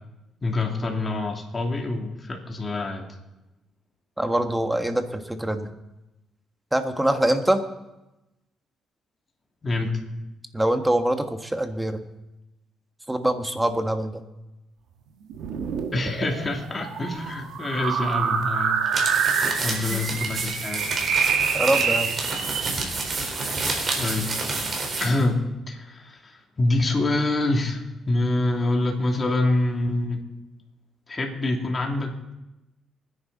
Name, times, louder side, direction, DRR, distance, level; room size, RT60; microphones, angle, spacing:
voice 1, 0.4-3.0 9.6-10.0 15.9-18.9 19.6-20.8 24.0-24.4 25.0-30.2 31.1-32.3, left 2 dB, 30° left, 1 dB, 2.8 m, -26 dB
voice 2, 4.2-5.7 6.7-7.6 10.5-12.0 13.1-14.2 19.9-20.0 21.5-22.1, right 1 dB, 10° right, 7 dB, 1.4 m, -24 dB
sound 1, 15.3-22.7, right 6 dB, 80° right, 1.7 m, -26 dB
sound 2, 18.9-25.2, right 3 dB, 45° right, 4.3 m, -29 dB
23.5 x 10.5 x 4.1 m, 0.97 s
cardioid pair, 90°, 0 cm